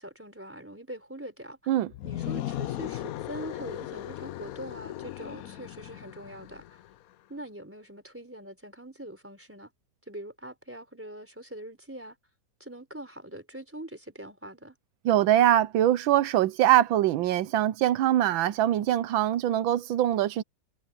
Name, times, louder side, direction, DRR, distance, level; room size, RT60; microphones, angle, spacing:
voice 1, 0.0-1.7 2.0-6.8 7.3-9.7 10.1-12.2 12.6-14.7, right 1 dB, 5° right, 4.0 m, -43 dB
sound 1, 1.9-6.9, left 13 dB, 80° left, 0.7 m, -37 dB
voice 2, 15.0-20.4, right 12 dB, 85° right, 1.5 m, -23 dB
omnidirectional pair, 2.1 m